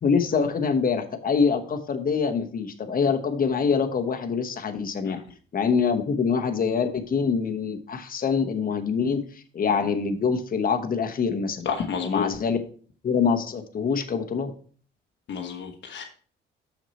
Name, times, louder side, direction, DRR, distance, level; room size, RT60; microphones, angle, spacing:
voice 1, 0.0-5.2 5.5-11.7 12.0-12.6 13.0-14.5, left 5 dB, 45° left, 6 dB, 1.1 m, -25 dB
voice 2, 11.6-12.3 15.3-16.0, left 6 dB, 65° left, 3 dB, 1.2 m, -30 dB
6.5 x 6.3 x 4.1 m, 0.43 s
cardioid pair, 90°, 20 cm